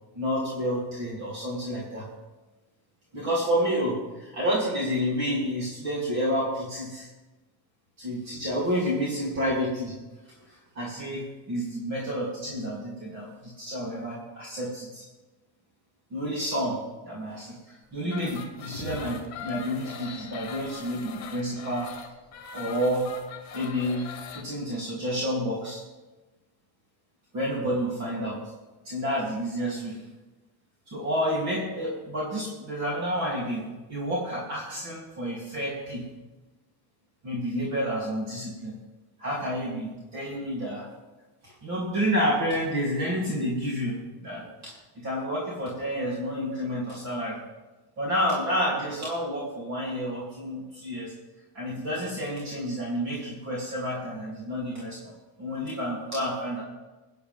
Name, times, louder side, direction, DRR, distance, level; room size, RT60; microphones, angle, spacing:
voice 1, 0.1-2.1 3.1-7.1 8.0-9.9 10.5-13.3 13.6-15.0 16.1-21.9 22.5-23.1 23.5-24.1 24.3-25.8 27.3-28.4 28.8-30.0 30.9-36.0 37.2-38.8 39.2-40.8 41.4-47.4 48.0-51.1 51.5-55.1 55.4-56.6, equal, 35° right, -5 dB, 3.2 m, -30 dB
sound 1, 18.0-24.4, left 7 dB, 35° left, 1.9 m, -41 dB
23.0 x 9.7 x 3.6 m, 1.1 s
cardioid pair, 175°, 44 cm